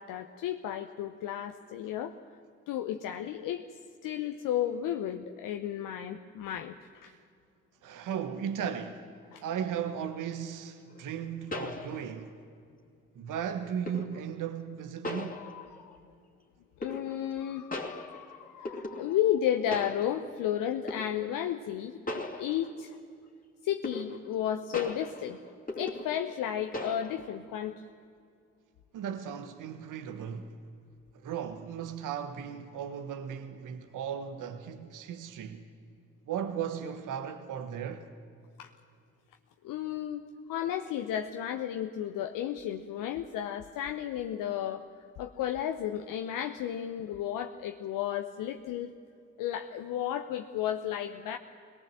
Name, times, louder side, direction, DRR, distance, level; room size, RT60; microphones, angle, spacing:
voice 1, 0.0-2.2 2.7-3.6 4.0-6.8 7.0-7.1 9.3-9.4 15.3-16.0 16.8-23.0 23.6-25.4 25.7-27.8 38.6-38.7 39.6-44.8 45.2-48.9 49.4-51.4, left 10 dB, 70° left, 0.9 m, -33 dB
voice 2, 7.8-9.0 9.4-12.4 13.1-15.4 28.9-30.5 31.1-35.6 36.3-38.1, right 8 dB, 65° right, 1.3 m, -36 dB
sound 1, 10.9-11.0 11.5-12.4 13.9-14.3 15.0-15.9 16.8-17.4 17.7-19.4 19.7-20.4 20.9-21.3 22.1-23.0 23.8-24.4 24.7-26.4 26.7-27.4, left 2 dB, 25° left, 2.7 m, -39 dB
22.0 x 18.0 x 7.6 m
hypercardioid pair, 40°, 34 cm